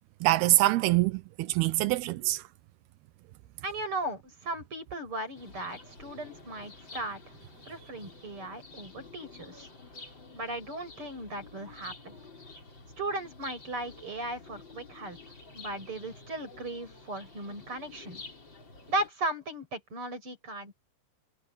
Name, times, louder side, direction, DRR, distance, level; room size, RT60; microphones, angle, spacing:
voice 1, 0.2-2.4, right 18 dB, 85° right, 2.3 m, -25 dB
voice 2, 3.6-7.2 7.6-9.7 10.3-12.2 13.0-15.2 15.5-18.2 18.9-20.7, right 2 dB, 25° right, 8.6 m, -36 dB
sound 1, 5.3-19.1, left 3 dB, 25° left, 4.8 m, -50 dB
omnidirectional pair, 5.5 m